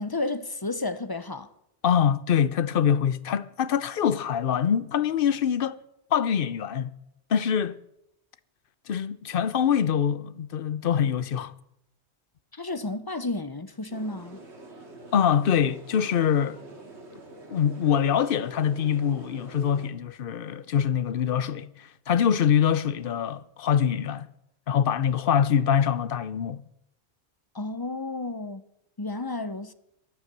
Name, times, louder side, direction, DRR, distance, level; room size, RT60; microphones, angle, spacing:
voice 1, 0.0-1.5 12.5-14.4 27.5-28.6 29.0-29.7, left 2 dB, 25° left, 0.6 m, -32 dB
voice 2, 1.8-5.8 6.1-6.9 7.3-7.8 8.9-11.5 15.1-16.6 17.5-24.3 24.7-26.6, left 8 dB, 55° left, 0.8 m, -24 dB
sound 1, 13.9-19.9, right 2 dB, 75° right, 2.6 m, -46 dB
22.0 x 9.5 x 6.8 m
omnidirectional pair, 1.2 m